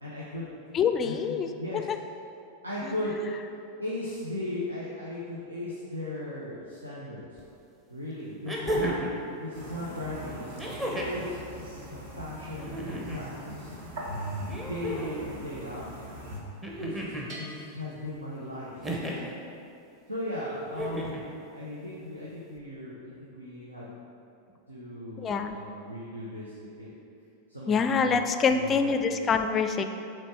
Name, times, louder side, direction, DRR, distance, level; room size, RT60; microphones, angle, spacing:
voice 1, 0.0-0.5 1.0-1.8 2.6-3.2 3.8-7.4 7.9-9.0 9.3-11.4 11.9-13.7 14.7-15.9 16.8-18.9 20.1-23.9 24.7-26.9 27.5-28.9, left 1 dB, 80° right, -6 dB, 0.8 m, -37 dB
voice 2, 0.7-2.0 2.8-3.4 25.2-25.6 27.7-29.8, left 5 dB, 25° left, 8 dB, 0.4 m, -26 dB
sound 1, 7.4-7.5 8.5-9.2 10.6-11.3 12.5-13.3 14.5-15.3 16.6-17.3 18.8-19.3 20.7-21.3 22.6-22.7, right 1 dB, 15° right, 0.9 m, -33 dB
sound 2, 9.5-16.4, right 1 dB, 55° right, 1.0 m, -40 dB
Bell, 17.3-19.0, equal, 35° right, 1.2 m, -48 dB
7.2 x 3.4 x 4.4 m, 2.6 s
figure-of-eight pair, 90°, 0 cm